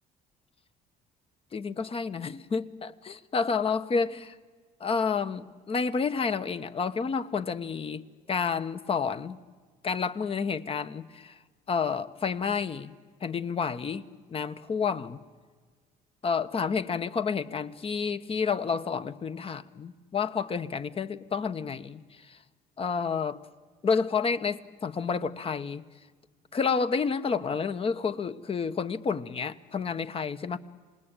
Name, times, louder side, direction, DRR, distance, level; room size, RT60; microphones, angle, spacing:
voice 1, 1.5-4.3 4.8-9.4 9.8-11.4 11.7-12.9 13.2-15.2 16.2-22.4 22.8-23.4 23.8-25.8 26.5-30.6, left 5 dB, 35° left, 12 dB, 1.1 m, -30 dB
26.5 x 20.0 x 9.0 m, 1.5 s
cardioid pair, 110°, 17 cm